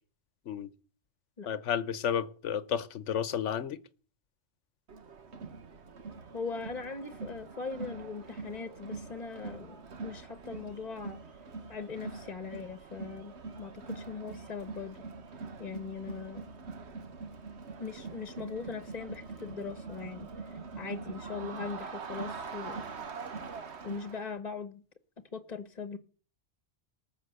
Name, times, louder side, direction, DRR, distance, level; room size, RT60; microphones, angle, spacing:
voice 1, 1.5-3.8, left 8 dB, 85° left, 1.2 m, -32 dB
Crowd, 4.9-24.3, right 4 dB, 70° right, 1.5 m, -43 dB
voice 2, 6.3-11.2 11.7-15.0 15.6-16.5 17.8-23.1 23.8-24.8 25.3-26.0, left 5 dB, 40° left, 1.2 m, -40 dB
19.0 x 7.1 x 7.9 m
omnidirectional pair, 1.2 m